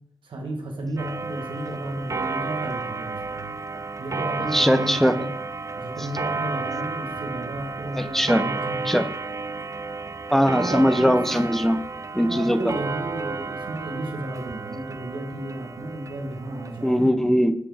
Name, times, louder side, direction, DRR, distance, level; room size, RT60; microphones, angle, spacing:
voice 1, 0.2-3.5 4.0-5.3 5.8-8.8 10.5-11.2 12.2-17.0, right 1 dB, 85° right, 1 dB, 1.3 m, -33 dB
Clock, 1.0-17.1, right 4 dB, 40° right, 0.4 m, -32 dB
voice 2, 4.5-5.1 8.0-8.4 8.9-9.1 10.3-11.8 12.1-12.6 16.8-17.5, equal, 5° left, 9 dB, 0.6 m, -20 dB
8.6 x 5.0 x 3.5 m, 0.73 s
cardioid pair, 40°, 8 cm